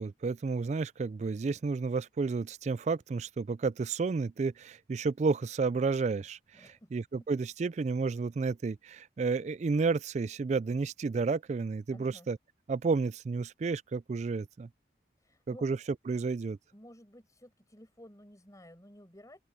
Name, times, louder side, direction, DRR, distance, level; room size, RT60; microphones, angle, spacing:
voice 1, 0.0-12.4 12.7-14.7 15.5-15.8 16.1-16.6, right 4 dB, 40° right, 0.3 m, -31 dB
voice 2, 6.5-6.9 11.9-12.3 15.2-15.6 16.7-19.4, equal, 20° left, 5.7 m, -54 dB
open air
head